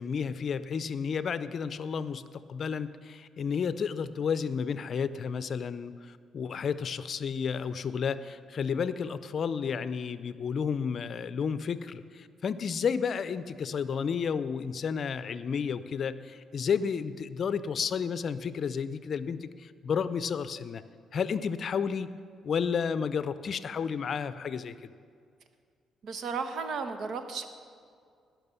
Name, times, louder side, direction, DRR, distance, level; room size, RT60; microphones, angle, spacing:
voice 1, 0.0-20.8 21.1-22.1 22.4-24.9, left 6 dB, 55° left, 14 dB, 0.5 m, -32 dB
voice 2, 26.0-27.5, right 5 dB, 65° right, 8 dB, 1.0 m, -34 dB
17.5 x 6.0 x 6.9 m, 2.2 s
cardioid pair, 90°, 0 cm